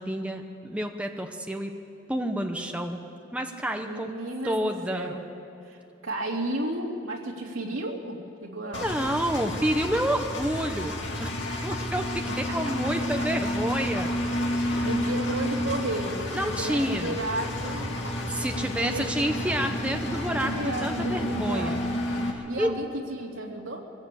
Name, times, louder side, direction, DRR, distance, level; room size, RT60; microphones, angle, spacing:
voice 1, 0.0-1.7 2.1-3.0 3.3-4.1 4.4-5.1 8.6-10.9 11.2-11.3 11.6-14.9 16.3-17.1 18.3-21.8 22.3-22.8, right 1 dB, 5° right, 4 dB, 1.0 m, -29 dB
voice 2, 3.8-5.2 5.6-8.9 11.5-11.8 12.5-13.1 14.8-16.2 16.5-17.9 18.8-19.1 20.4-21.8 22.5-23.9, right 1 dB, 85° right, 0 dB, 2.8 m, -33 dB
Engine, 8.7-22.3, left 1 dB, 60° left, 2.6 m, -30 dB
23.0 x 16.5 x 8.5 m, 2.7 s
head